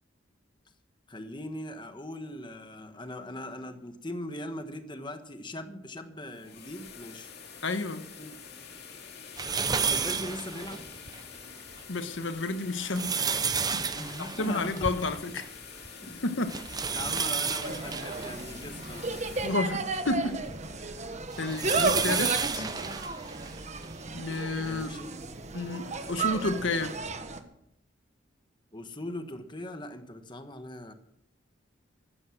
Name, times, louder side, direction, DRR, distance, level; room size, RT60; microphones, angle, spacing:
voice 1, 1.1-7.3 8.2-8.4 9.6-10.9 13.9-15.2 16.0-16.3 16.9-19.1 24.5-25.2 28.7-30.9, left 1 dB, 25° left, 8 dB, 1.3 m, -40 dB
sound 1, 6.1-21.0, left 6 dB, 55° left, 2.4 m, -47 dB
voice 2, 7.6-8.0 11.9-13.2 14.2-15.4 16.2-16.5 19.4-20.4 21.4-22.6 24.1-24.9 25.5-27.0, left 2 dB, 75° left, 9 dB, 1.3 m, -31 dB
sound 2, 9.4-11.2 11.7-11.8 12.6-15.6 15.8-15.9 16.5-19.5 20.1-24.0 24.7-24.8 26.1-26.2, right 5 dB, 20° right, 0.7 m, -32 dB
Insect, 17.6-27.4, right 3 dB, 35° right, 1.4 m, -34 dB
15.5 x 13.0 x 6.3 m, 0.75 s
head